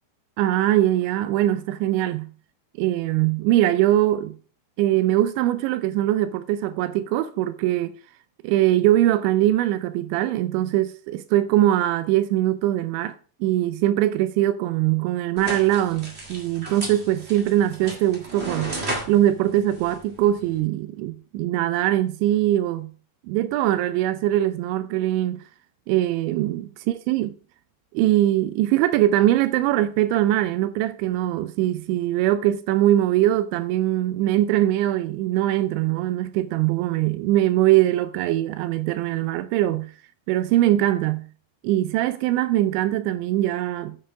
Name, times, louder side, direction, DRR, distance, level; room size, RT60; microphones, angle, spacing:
voice 1, 0.4-2.3 2.8-4.4 4.8-7.9 8.4-13.2 13.4-22.9 23.3-25.4 25.9-27.4 27.9-39.9 40.3-41.3 41.6-44.0, right 14 dB, 85° right, 2.9 m, -22 dB
sound 1, 15.4-20.6, right 2 dB, 55° right, 0.7 m, -35 dB
8.8 x 7.2 x 4.9 m
omnidirectional pair, 5.2 m